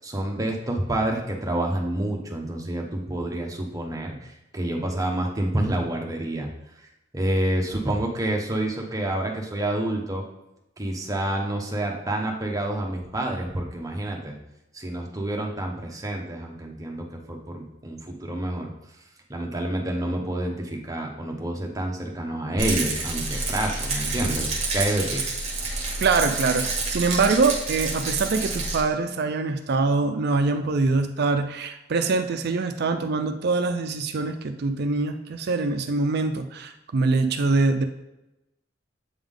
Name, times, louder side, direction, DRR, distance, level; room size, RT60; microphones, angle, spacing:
voice 1, 0.0-6.5 7.1-10.2 10.8-14.4 14.7-18.7 19.3-25.3, right 1 dB, 20° right, 0 dB, 0.9 m, -28 dB
Rattle, 22.6-28.8, right 3 dB, 35° right, 1.2 m, -28 dB
voice 2, 26.0-37.9, right 3 dB, 55° right, 7 dB, 0.4 m, -24 dB
8.0 x 3.5 x 3.7 m, 0.93 s
head